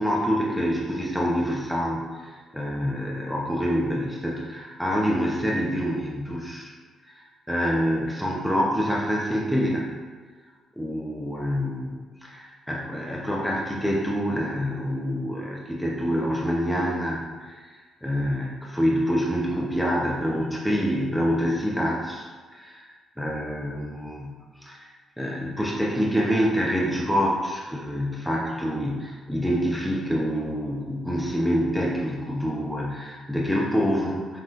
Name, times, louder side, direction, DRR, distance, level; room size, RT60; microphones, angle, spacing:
voice 1, 0.0-6.7 7.1-9.9 10.8-22.3 22.5-22.9 23.2-24.8 25.2-34.4, equal, ahead, -4 dB, 0.8 m, -26 dB
5.6 x 3.0 x 2.6 m, 1.5 s
cardioid pair, 90°, 0 cm